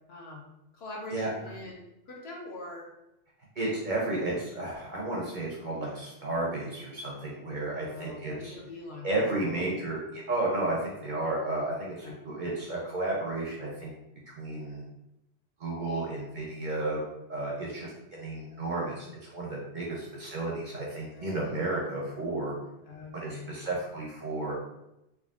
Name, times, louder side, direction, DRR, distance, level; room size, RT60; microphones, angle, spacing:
voice 1, 0.1-0.5 0.7-2.9 7.7-9.6 12.0-12.1 21.1-21.4 22.8-23.5, left 2 dB, 65° left, -1 dB, 0.9 m, -43 dB
voice 2, 3.6-8.5 9.0-13.9 14.4-14.8 15.6-17.0 17.3-22.6 23.1-24.6, right 2 dB, 55° right, -3 dB, 0.6 m, -32 dB
3.4 x 2.2 x 2.3 m, 0.88 s
omnidirectional pair, 1.2 m